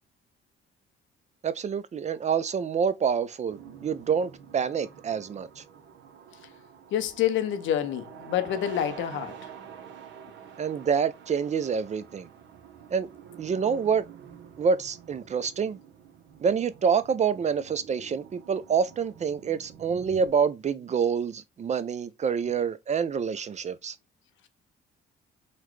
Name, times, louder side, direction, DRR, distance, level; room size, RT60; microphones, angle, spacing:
voice 1, 1.4-5.6 10.6-12.3 12.9-13.1 13.4-14.0 14.6-15.8 16.4-24.0, right 6 dB, 35° right, 0.4 m, -27 dB
sound 1, 3.5-20.3, right 8 dB, 70° right, 0.7 m, -47 dB
voice 2, 6.9-9.3, left 10 dB, 75° left, 0.6 m, -27 dB
4.0 x 2.2 x 3.0 m
cardioid pair, 90°, 20 cm